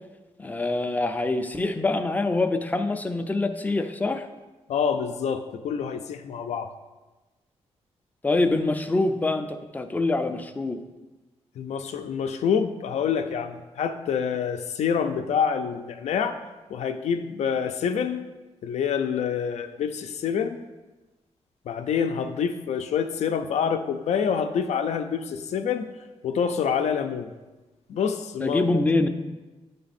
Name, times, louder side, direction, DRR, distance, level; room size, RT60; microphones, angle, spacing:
voice 1, 0.4-4.3 8.2-10.8 28.4-29.1, left 2 dB, 15° left, 7 dB, 0.4 m, -25 dB
voice 2, 4.7-6.7 11.6-16.4 16.7-18.3 18.6-20.6 21.7-25.9 26.2-27.3 27.9-28.8, left 7 dB, 80° left, 7 dB, 0.4 m, -27 dB
9.6 x 3.4 x 4.1 m, 1.1 s
wide cardioid pair, 145°, 11 cm